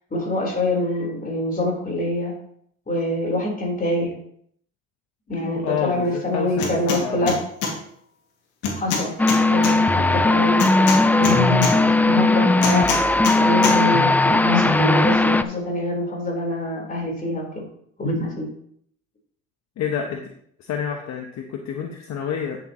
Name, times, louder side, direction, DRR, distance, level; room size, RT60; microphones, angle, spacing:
voice 1, 0.1-2.4 2.9-4.1 5.3-7.4 8.7-9.1 9.5-10.9 11.1-13.0 13.3-17.6 18.0-18.5, left 1 dB, 25° left, -1 dB, 4.1 m, -25 dB
voice 2, 5.4-7.3 9.9-10.3 19.8-20.2 20.6-22.6, left 8 dB, 60° left, 3 dB, 1.1 m, -29 dB
sound 1, 6.6-7.0 7.3-7.7 8.6-9.7 10.6-11.7 12.6-13.4 13.6-13.8, left 5 dB, 80° left, 2.3 m, -24 dB
sound 2, 9.2-15.4, left 2 dB, 5° left, 0.4 m, -18 dB
9.7 x 7.9 x 3.1 m, 0.65 s
supercardioid pair, 85°, 31 cm